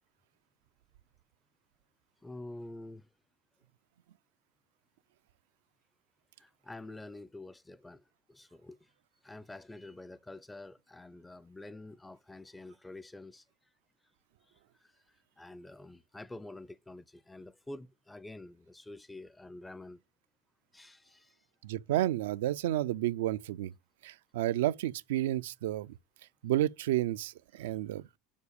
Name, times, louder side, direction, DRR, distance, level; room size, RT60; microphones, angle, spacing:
voice 1, 2.2-3.1 6.4-8.9 9.2-13.4 14.5-14.6 14.8-14.9 15.4-20.0 20.7-21.4 27.6-27.7, left 2 dB, 10° left, 0.4 m, -48 dB
voice 2, 21.6-23.7 24.0-25.9 26.4-28.0, right 13 dB, 90° right, 0.3 m, -31 dB
7.1 x 4.2 x 6.8 m
supercardioid pair, 120°, 0 cm